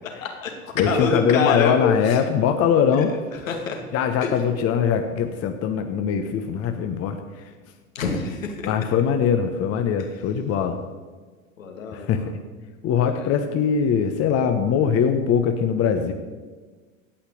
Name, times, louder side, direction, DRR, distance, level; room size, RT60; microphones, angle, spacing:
voice 1, 0.0-2.2 3.5-3.8 4.2-4.4 7.9-8.7 10.0-10.1 11.6-12.3 13.1-13.3, left 5 dB, 80° left, 3 dB, 2.7 m, -26 dB
voice 2, 0.8-3.1 3.9-7.5 8.6-10.8 11.9-12.2 12.8-16.1, left 7 dB, 35° left, 6 dB, 1.2 m, -22 dB
17.0 x 5.7 x 8.5 m, 1.4 s
hypercardioid pair, 100°, 39 cm